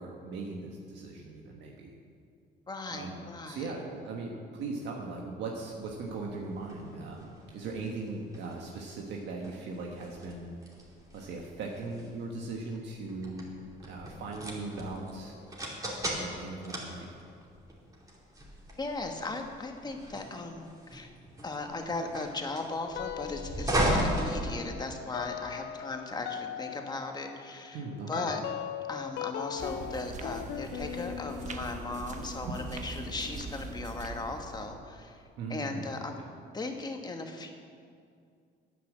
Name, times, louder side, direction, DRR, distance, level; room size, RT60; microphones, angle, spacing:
voice 1, 0.0-1.9 2.9-10.7 11.1-13.5 13.8-15.4 16.1-17.1 27.7-28.3 32.4-32.6 34.5-34.7 35.4-36.2, right 3 dB, 75° right, 0 dB, 1.4 m, -39 dB
voice 2, 2.7-3.7 18.8-21.1 21.4-28.4 28.9-35.2 35.5-36.2 36.5-37.5, left 3 dB, 20° left, 4 dB, 1.4 m, -37 dB
sound 1, 5.8-25.2, right 1 dB, 20° right, 2.6 m, -37 dB
sound 2, 22.9-23.7 24.0-34.4, left 11 dB, 70° left, 0.5 m, -40 dB
sound 3, 29.6-34.7, right 4 dB, 40° right, 1.0 m, -42 dB
9.9 x 8.6 x 7.5 m, 2.3 s
cardioid pair, 115°, 18 cm